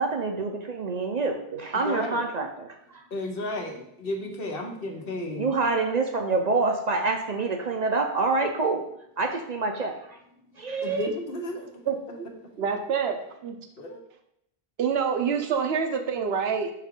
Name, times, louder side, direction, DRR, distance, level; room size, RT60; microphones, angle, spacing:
voice 1, 0.0-3.0 5.3-8.8 9.2-10.2 10.6-11.1, right 3 dB, 50° right, 4 dB, 0.6 m, -27 dB
voice 2, 1.7-2.2 3.1-5.5 10.8-12.2 13.7-14.0, left 1 dB, 65° left, 3 dB, 1.1 m, -33 dB
voice 3, 11.9-12.3 12.6-13.6 14.8-16.7, right 6 dB, 75° right, 6 dB, 1.0 m, -27 dB
5.6 x 4.6 x 3.6 m, 0.77 s
omnidirectional pair, 1.1 m